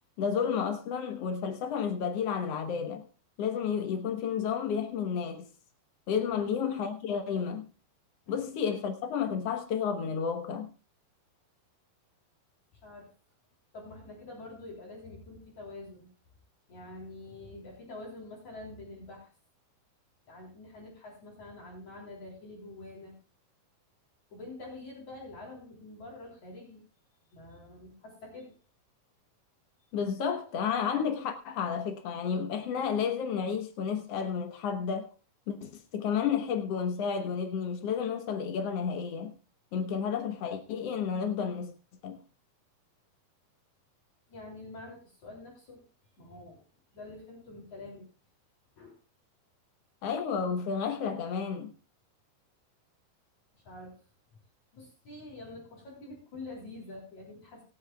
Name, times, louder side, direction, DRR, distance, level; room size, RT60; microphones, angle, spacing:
voice 1, 0.2-3.0 3.4-5.5 6.1-7.6 8.3-10.7 29.9-35.1 35.5-39.3 39.7-41.7 42.0-42.2 50.0-51.7, left 7 dB, 70° left, 1.5 m, -31 dB
voice 2, 13.7-16.1 16.7-19.3 20.3-23.1 24.3-26.8 27.3-28.5 29.8-29.9 44.3-45.8 46.2-46.6 46.9-48.0 48.8-48.9 53.6-54.0 54.7-57.6, left 2 dB, 50° left, 4.8 m, -46 dB
25.5 x 8.7 x 2.3 m
omnidirectional pair, 4.2 m